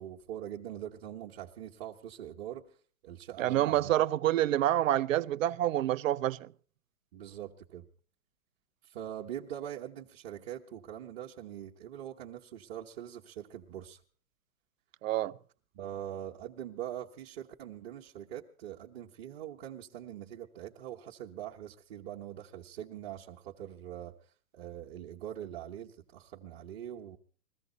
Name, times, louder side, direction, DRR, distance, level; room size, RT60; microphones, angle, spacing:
voice 1, 0.0-2.8 3.0-3.9 7.1-7.9 8.8-14.0 15.7-27.2, right 11 dB, 30° right, 1.1 m, -43 dB
voice 2, 3.4-6.5 15.0-15.3, right 13 dB, 60° right, 0.6 m, -27 dB
21.5 x 15.0 x 3.9 m
hypercardioid pair, 160°, 45 cm